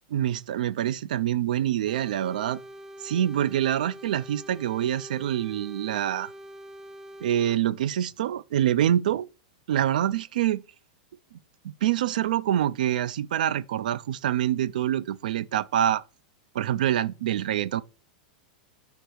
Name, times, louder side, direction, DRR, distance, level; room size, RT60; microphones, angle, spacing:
voice 1, 0.1-2.6 3.0-6.3 7.2-9.3 9.7-10.6 11.8-16.0 16.5-17.8, right 11 dB, 80° right, 0.4 m, -26 dB
sound 1, 1.9-7.6, equal, 10° right, 0.5 m, -45 dB
4.6 x 4.6 x 5.0 m
supercardioid pair, 150°, 4 cm